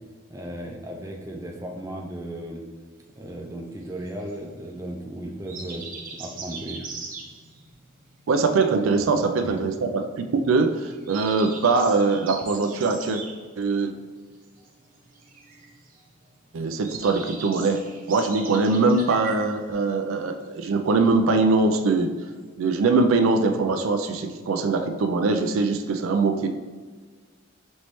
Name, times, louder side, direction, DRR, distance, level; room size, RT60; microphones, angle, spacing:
voice 1, 0.3-2.6 3.2-5.9 6.2-6.8 9.0-9.1 9.4-9.6, right 1 dB, 15° right, 0 dB, 0.4 m, -35 dB
sound 1, 3.0-22.5, right 4 dB, 45° right, 0.7 m, -42 dB
voice 2, 8.3-13.2 13.6-13.9 16.5-22.1 22.6-26.5, right 3 dB, 90° right, 6 dB, 0.4 m, -22 dB
5.3 x 3.1 x 3.0 m, 1.5 s
head